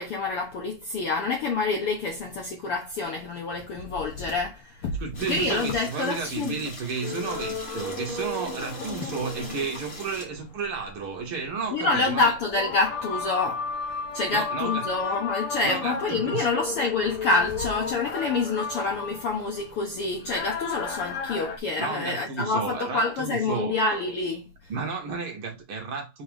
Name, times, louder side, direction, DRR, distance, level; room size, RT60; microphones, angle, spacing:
voice 1, 0.0-6.5 11.7-13.6 14.1-24.5, left 3 dB, 75° left, 1.3 m, -27 dB
voice 2, 5.0-12.3 14.3-15.1 15.6-16.5 21.8-23.7 24.7-26.2, right 5 dB, 80° right, 1.2 m, -32 dB
sound 1, 5.1-10.3, left 2 dB, 25° left, 1.4 m, -41 dB
sound 2, 7.0-21.6, left 4 dB, 60° left, 1.5 m, -34 dB
5.0 x 4.0 x 4.9 m
omnidirectional pair, 4.0 m